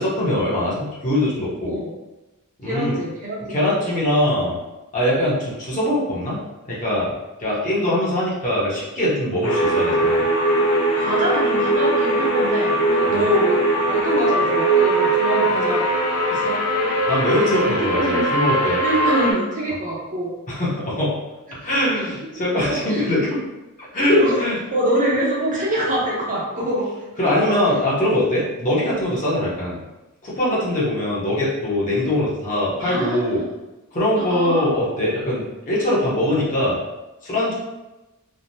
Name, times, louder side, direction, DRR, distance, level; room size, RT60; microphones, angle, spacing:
voice 1, 0.0-1.8 2.6-2.9 3.5-4.6 4.9-6.4 6.6-7.1 7.4-10.2 13.1-13.2 17.1-18.8 20.5-21.1 21.6-23.4 23.9-24.6 27.2-29.8 30.2-33.4 33.9-36.8 37.2-37.5, left 1 dB, 35° left, -6 dB, 0.9 m, -22 dB
voice 2, 1.6-1.9 2.6-4.0 11.0-15.9 16.3-16.6 17.6-18.3 18.8-20.3 21.6-21.7 21.9-22.1 22.6-23.0 24.2-24.4 24.7-26.9 27.3-27.4 32.8-33.4 34.2-34.7, right 1 dB, 35° right, -4 dB, 0.7 m, -25 dB
sound 1, 9.4-19.3, right 1 dB, 85° left, 0.7 m, -20 dB
3.3 x 2.0 x 2.7 m, 1.0 s
head